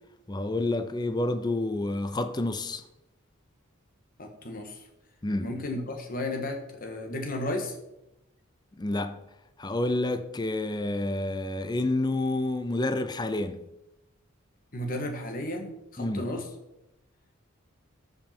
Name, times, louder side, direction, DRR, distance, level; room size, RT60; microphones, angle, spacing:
voice 1, 0.3-2.8 5.2-5.5 8.8-9.2 9.6-13.6 16.0-16.3, left 2 dB, 20° left, 0.5 m, -29 dB
voice 2, 4.2-4.8 5.4-7.7 14.7-16.5, left 1 dB, 40° left, 1.5 m, -33 dB
13.0 x 5.5 x 4.4 m
head